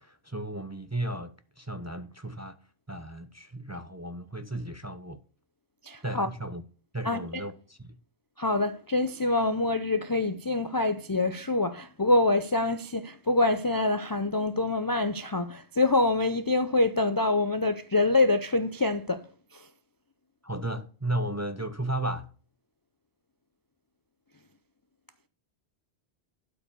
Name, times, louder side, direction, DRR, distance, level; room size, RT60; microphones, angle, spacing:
voice 1, 0.0-2.6 2.9-5.2 6.0-6.6 6.9-8.0 20.4-22.3, right 1 dB, 20° right, 0.6 m, -34 dB
voice 2, 5.8-6.3 7.0-7.4 8.4-19.2, left 2 dB, 30° left, 0.4 m, -25 dB
12.0 x 5.0 x 6.7 m
omnidirectional pair, 1.1 m